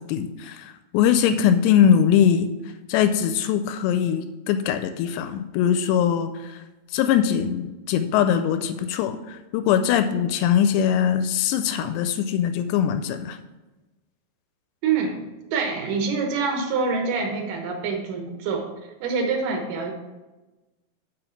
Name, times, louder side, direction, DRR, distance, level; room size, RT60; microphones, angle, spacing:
voice 1, 0.0-2.5 2.9-6.6 6.9-13.4, left 9 dB, 85° left, 9 dB, 2.5 m, -21 dB
voice 2, 14.8-15.2 15.5-18.7 19.0-19.9, right 5 dB, 75° right, 3 dB, 2.0 m, -25 dB
6.9 x 5.3 x 7.0 m, 1.1 s
omnidirectional pair, 5.3 m